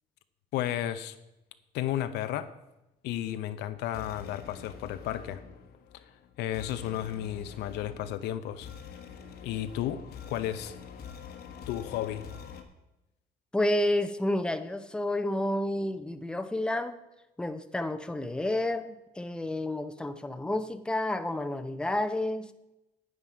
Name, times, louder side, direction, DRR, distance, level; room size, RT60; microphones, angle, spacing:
voice 1, 0.5-1.2 1.7-2.5 3.0-5.4 5.9-6.0 6.4-8.7 9.4-10.8 11.7-12.2, left 12 dB, 85° left, 0.7 m, -33 dB
sound 1, 3.3-12.6, left 7 dB, 70° left, 1.4 m, -46 dB
voice 2, 13.5-17.0 17.4-22.5, left 1 dB, 5° left, 0.7 m, -30 dB
9.8 x 8.9 x 5.0 m
cardioid pair, 110°, 17 cm